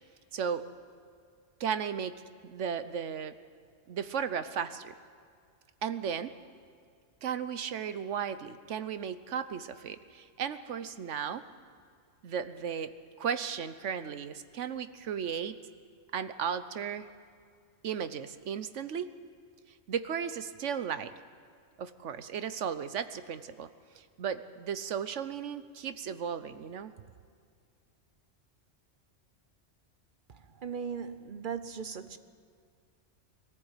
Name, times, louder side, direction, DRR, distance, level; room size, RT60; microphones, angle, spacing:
voice 1, 0.3-0.6 1.6-2.1 2.4-3.3 3.9-4.9 5.8-6.3 7.2-11.4 12.2-12.9 13.2-15.6 16.1-17.1 17.8-19.1 19.9-21.1 21.8-23.7 24.0-26.9, right 7 dB, 80° right, 1.2 m, -35 dB
voice 2, 30.3-32.2, right 6 dB, 45° right, 1.0 m, -38 dB
21.5 x 14.5 x 9.0 m
omnidirectional pair, 1.2 m